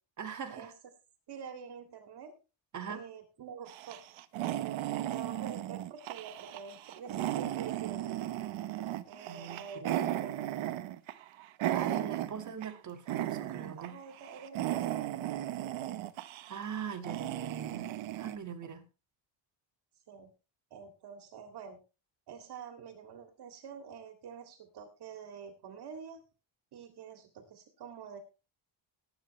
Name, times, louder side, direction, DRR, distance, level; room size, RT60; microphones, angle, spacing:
voice 1, 0.2-0.7 2.7-3.0 9.3-10.2 11.7-14.0 16.5-17.9 18.2-18.8, right 7 dB, 40° right, 7 dB, 1.9 m, -41 dB
voice 2, 1.3-2.3 2.9-4.0 4.4-8.2 9.0-10.4 13.7-15.8 20.1-20.3 20.7-21.8 22.3-26.2 26.7-28.2, right 6 dB, 55° right, 4 dB, 2.6 m, -47 dB
sound 1, 3.7-12.8 13.1-13.9 14.2-18.4, right 13 dB, 75° right, 1.2 m, -36 dB
19.0 x 9.5 x 3.2 m, 0.32 s
cardioid pair, 165°, 47 cm